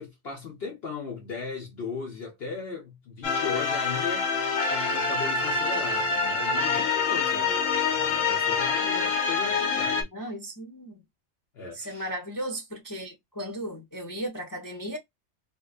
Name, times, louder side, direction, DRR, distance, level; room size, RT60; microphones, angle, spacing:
voice 1, 0.0-10.1 11.5-12.1, left 4 dB, 55° left, 1.1 m, -37 dB
sound 1, 3.2-10.0, left 5 dB, 75° left, 1.2 m, -26 dB
voice 2, 10.0-11.0 11.7-15.0, right 1 dB, 20° left, 0.5 m, -36 dB
3.8 x 2.6 x 2.4 m
omnidirectional pair, 1.3 m